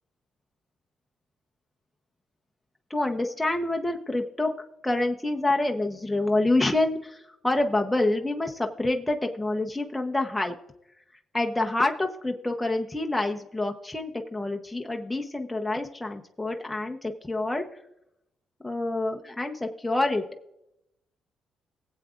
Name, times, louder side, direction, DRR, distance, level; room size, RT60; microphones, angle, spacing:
voice 1, 2.9-4.5 4.8-7.2 7.4-10.5 11.3-17.6 18.6-20.2, left 2 dB, 10° left, 2 dB, 0.9 m, -27 dB
18.5 x 8.1 x 2.5 m, 0.81 s
cardioid pair, 90°, 0 cm